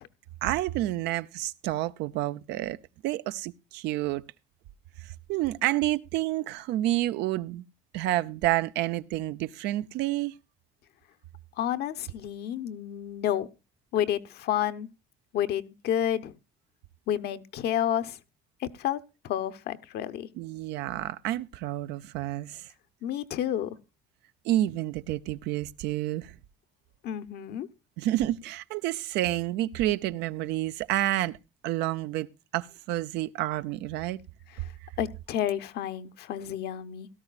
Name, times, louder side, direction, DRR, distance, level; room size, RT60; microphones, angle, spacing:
voice 1, 0.4-2.8 3.0-4.2 5.3-7.6 7.9-10.3 20.3-22.7 24.4-26.3 28.0-31.4 31.6-32.3 32.5-34.2, right 15 dB, 90° right, 0.6 m, -29 dB
voice 2, 11.6-13.5 13.9-14.9 15.3-16.3 17.1-18.2 18.8-20.3 23.0-23.8 27.0-27.7 35.0-37.1, left 10 dB, 75° left, 0.9 m, -30 dB
17.0 x 13.0 x 2.4 m
cardioid pair, 110°, 17 cm